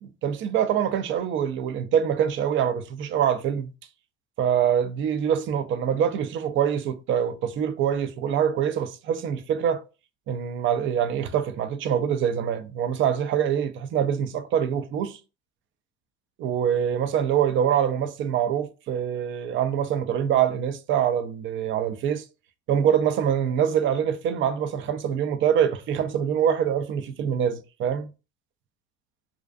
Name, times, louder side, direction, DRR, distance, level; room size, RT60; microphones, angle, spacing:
voice 1, 0.0-3.7 4.4-9.8 10.3-15.2 16.4-22.2 22.7-28.1, right 9 dB, 40° right, 0.4 m, -24 dB
2.5 x 2.2 x 2.3 m
hypercardioid pair, 85°, 31 cm